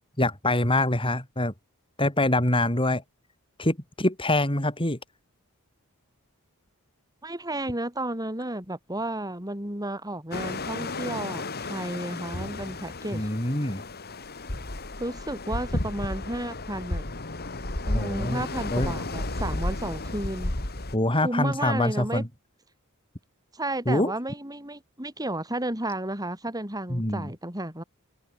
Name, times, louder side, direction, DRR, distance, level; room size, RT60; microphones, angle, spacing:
voice 1, 0.2-1.5 2.0-3.0 3.6-5.0 13.1-13.8 17.9-18.4 18.7-18.9 20.9-22.3 23.9-24.1 26.9-27.3, left 1 dB, 25° left, 6.2 m, -25 dB
voice 2, 7.2-13.3 15.0-17.0 17.8-20.6 21.1-22.2 23.5-27.8, right 1 dB, 15° right, 7.8 m, -32 dB
sound 1, 10.3-20.9, left 2 dB, 45° left, 2.4 m, -33 dB
head